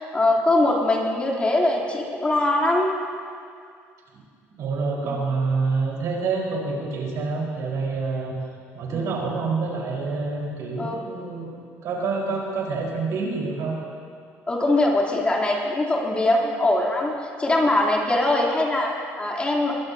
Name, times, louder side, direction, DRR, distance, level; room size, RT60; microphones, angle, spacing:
voice 1, 0.0-2.9 5.0-5.2 8.9-9.1 10.8-11.0 14.5-17.1 17.4-19.7, left 2 dB, 20° left, -3 dB, 3.3 m, -22 dB
voice 2, 4.6-8.4 8.7-11.6 11.8-13.8, right 4 dB, 70° right, -2 dB, 4.4 m, -27 dB
22.5 x 19.0 x 2.8 m, 2.2 s
cardioid pair, 95°, 6 cm